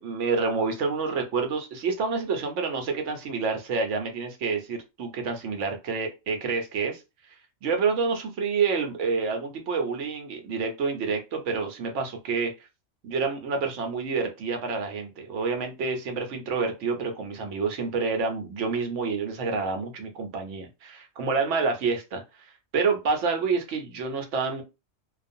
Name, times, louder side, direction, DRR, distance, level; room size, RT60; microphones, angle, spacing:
voice 1, 0.0-7.0 7.6-12.5 13.0-22.2 22.7-24.6, right 4 dB, 75° right, 4 dB, 1.0 m, -28 dB
2.4 x 2.3 x 2.6 m, 0.26 s
omnidirectional pair, 1.3 m